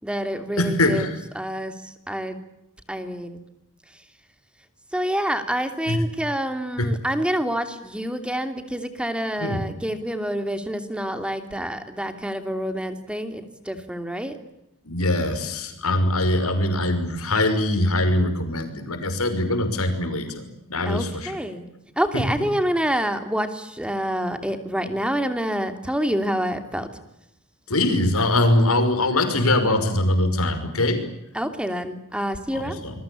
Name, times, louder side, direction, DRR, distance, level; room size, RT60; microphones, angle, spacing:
voice 1, 0.0-1.1 1.3-2.4 2.9-3.4 4.9-14.4 20.8-21.7 22.0-26.9 31.3-32.8, equal, 5° right, 8 dB, 2.9 m, -27 dB
voice 2, 0.6-1.1 5.9-6.0 6.8-6.9 9.4-9.6 14.8-21.3 24.8-24.9 27.7-31.0 32.5-32.9, left 1 dB, 70° left, 7 dB, 5.9 m, -22 dB
27.5 x 22.5 x 8.6 m, 0.86 s
head